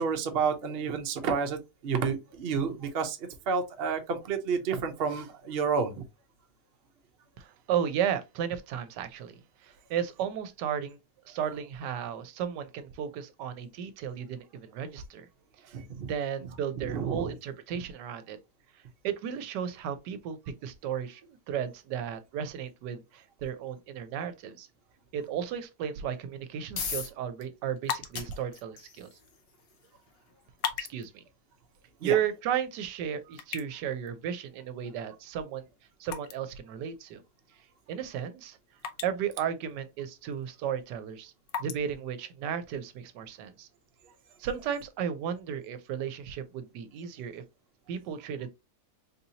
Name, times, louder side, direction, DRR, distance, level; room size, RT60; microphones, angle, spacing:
voice 1, 0.0-3.2 3.5-6.0 15.7-16.1 16.8-17.3 32.0-32.2, right 5 dB, 55° right, 0.6 m, -30 dB
voice 2, 7.4-11.0 11.3-15.3 16.0-18.4 18.7-24.7 25.1-29.1 30.8-31.2 32.0-35.7 36.0-37.2 37.9-38.6 39.0-41.3 41.6-43.7 44.4-47.4 47.9-48.5, right 9 dB, 80° right, 1.2 m, -34 dB
sound 1, 26.3-41.1, left 6 dB, 85° left, 1.6 m, -46 dB
sound 2, 27.7-43.1, left 7 dB, 65° left, 0.9 m, -44 dB
4.0 x 2.7 x 2.7 m
omnidirectional pair, 1.9 m